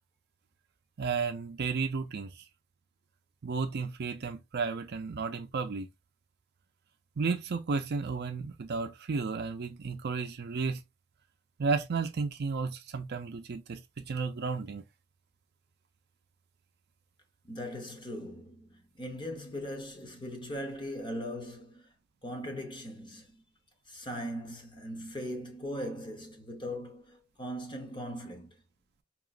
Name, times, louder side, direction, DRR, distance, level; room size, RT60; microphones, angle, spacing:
voice 1, 1.0-2.4 3.4-5.9 7.2-10.8 11.6-14.8, right 4 dB, 50° right, 0.5 m, -33 dB
voice 2, 17.4-21.9 22.2-23.4 23.9-28.6, equal, 25° left, 1.0 m, -39 dB
5.1 x 2.9 x 2.5 m
head